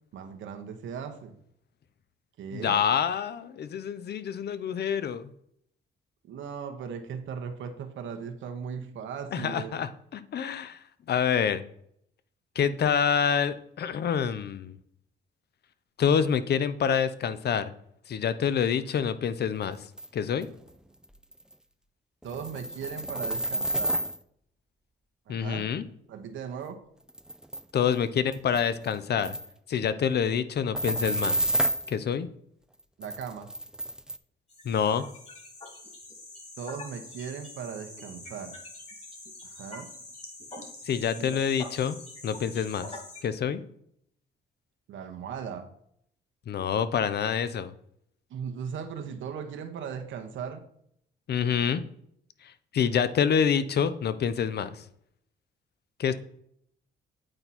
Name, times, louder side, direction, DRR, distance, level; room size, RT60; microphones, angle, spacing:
voice 1, 0.1-1.4 2.4-2.8 6.3-9.8 22.2-24.0 25.3-25.7 26.1-26.8 33.0-33.5 36.6-38.6 39.4-39.9 41.2-41.4 44.9-45.7 48.3-50.6, right 7 dB, 80° right, 6 dB, 1.0 m, -38 dB
voice 2, 2.5-5.3 9.3-10.8 11.1-11.6 12.6-14.8 16.0-17.7 18.1-19.8 20.1-20.5 25.3-25.8 27.7-29.3 29.7-31.5 31.9-32.3 34.6-35.0 40.9-42.0 42.2-42.9 43.2-43.6 46.5-47.7 51.3-51.8 52.7-54.8 56.0-56.1, left 7 dB, 55° left, 14 dB, 0.6 m, -27 dB
sound 1, 20.0-20.1 20.4-20.5 21.0-21.1 21.3-21.5 22.2-24.2 26.6-26.7 27.1-27.6 27.9-28.0 28.3-28.9 29.2-29.5 30.7-31.9 33.0-34.2, right 1 dB, 5° right, 0.4 m, -30 dB
sound 2, 34.5-43.2, left 2 dB, 35° left, 2.3 m, -45 dB
8.8 x 4.4 x 4.1 m, 0.70 s
cardioid pair, 80°, 20 cm